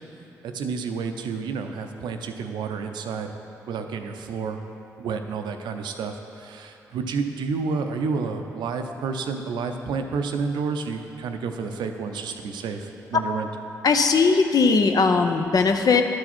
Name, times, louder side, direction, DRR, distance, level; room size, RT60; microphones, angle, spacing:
voice 1, 0.4-3.3 3.7-4.6 5.0-13.5, right 5 dB, 70° right, 6 dB, 0.5 m, -30 dB
voice 2, 13.8-16.0, left 4 dB, 55° left, 6 dB, 0.6 m, -19 dB
11.0 x 4.7 x 4.3 m, 2.8 s
hypercardioid pair, 40°, 8 cm